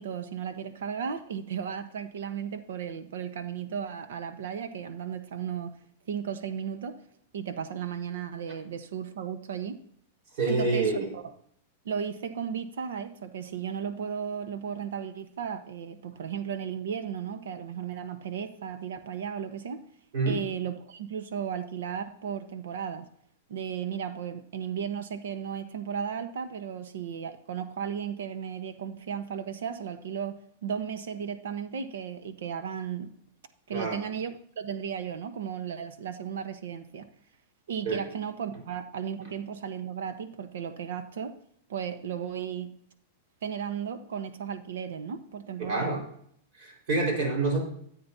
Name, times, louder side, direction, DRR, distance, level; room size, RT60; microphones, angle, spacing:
voice 1, 0.0-5.8 6.1-7.0 7.3-9.8 10.5-11.2 11.8-19.8 20.2-23.1 23.5-33.1 33.7-37.1 37.7-41.3 41.7-42.7 43.4-46.0, right 7 dB, 85° right, 9 dB, 1.1 m, -35 dB
voice 2, 10.4-11.1 20.1-20.4 33.7-34.0 37.8-38.0 45.6-46.0 46.5-47.6, right 3 dB, 55° right, 0 dB, 4.6 m, -27 dB
13.5 x 8.7 x 2.8 m, 0.65 s
supercardioid pair, 150°, 0 cm